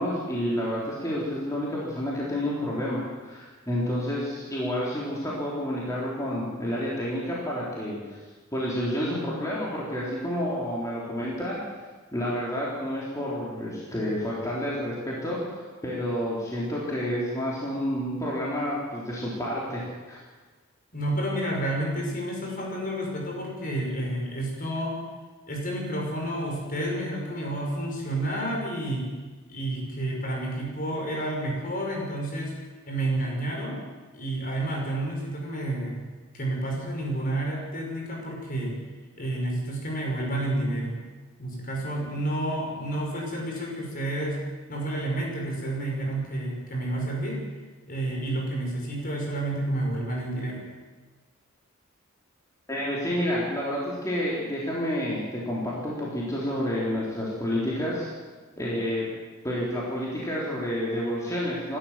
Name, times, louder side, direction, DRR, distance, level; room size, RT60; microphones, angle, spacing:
voice 1, 0.0-8.2 8.5-11.6 12.1-20.2 52.7-58.1 58.6-59.1 59.4-61.8, equal, 15° left, -6 dB, 4.1 m, -29 dB
voice 2, 20.9-25.0 25.5-29.0 29.5-32.5 32.9-33.8 34.1-36.0 36.3-38.7 39.1-40.9 41.4-44.4 44.7-47.4 47.9-50.6, right 1 dB, 40° left, -1 dB, 6.0 m, -30 dB
28.0 x 13.0 x 7.7 m, 1.4 s
head